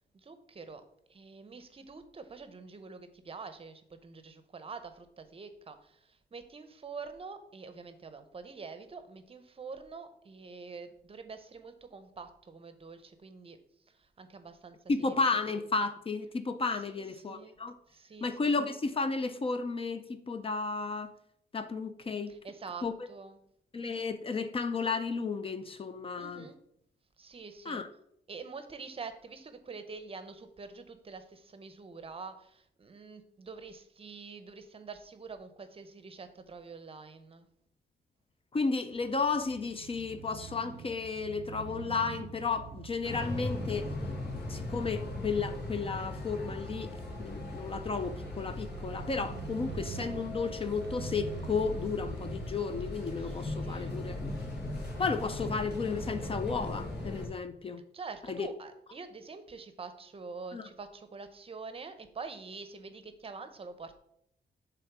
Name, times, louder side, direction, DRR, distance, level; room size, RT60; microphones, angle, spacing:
voice 1, 0.1-0.8 1.1-13.6 13.9-15.2 16.9-17.5 17.9-18.6 22.3-23.4 26.2-26.6 27.2-27.8 28.3-37.5 53.2-54.0 57.9-64.0, right 4 dB, 35° right, 9 dB, 0.7 m, -46 dB
voice 2, 14.9-17.7 18.2-21.1 21.5-22.3 22.8-22.9 23.7-26.5 27.7-27.9 38.5-43.9 44.5-46.9 47.2-54.2 55.0-57.8 58.3-58.5 60.5-60.7, left 4 dB, 30° left, 9 dB, 0.4 m, -33 dB
Crow / Motorcycle, 38.9-56.8, right 8 dB, 85° right, 0.4 m, -48 dB
sound 1, 43.0-57.3, left 2 dB, 75° left, 2.2 m, -38 dB
6.8 x 3.6 x 5.9 m, 0.73 s
wide cardioid pair, 140°, 18 cm